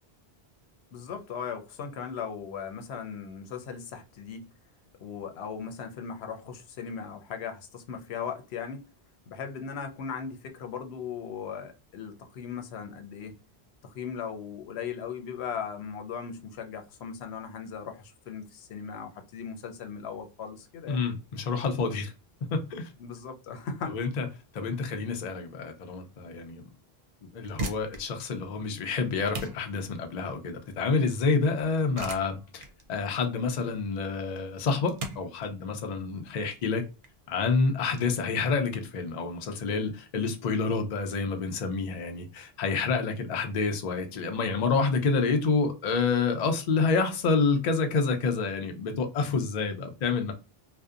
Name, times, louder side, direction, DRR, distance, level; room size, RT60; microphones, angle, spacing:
voice 1, 0.9-4.5 5.0-8.9 9.3-13.3 13.8-21.0 23.0-24.0, left 6 dB, 85° left, 0.8 m, -38 dB
voice 2, 20.9-22.1 22.5-22.9 23.9-24.3 24.5-26.7 27.3-36.8 37.3-50.3, left 4 dB, 50° left, 0.5 m, -28 dB
sound 1, 27.3-38.0, right 2 dB, 60° right, 0.7 m, -41 dB
2.6 x 2.1 x 2.3 m
omnidirectional pair, 1.1 m